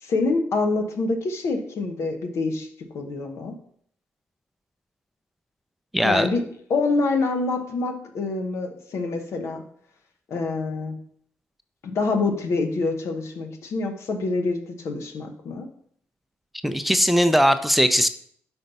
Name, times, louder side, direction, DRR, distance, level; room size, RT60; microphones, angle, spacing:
voice 1, 0.0-2.7 2.9-3.5 6.0-6.4 6.7-9.6 10.3-11.0 11.8-15.7, left 3 dB, 70° left, 5 dB, 1.0 m, -26 dB
voice 2, 5.9-6.3 16.6-18.1, equal, ahead, 10 dB, 0.5 m, -19 dB
5.0 x 4.5 x 5.4 m, 0.63 s
supercardioid pair, 60°, 5 cm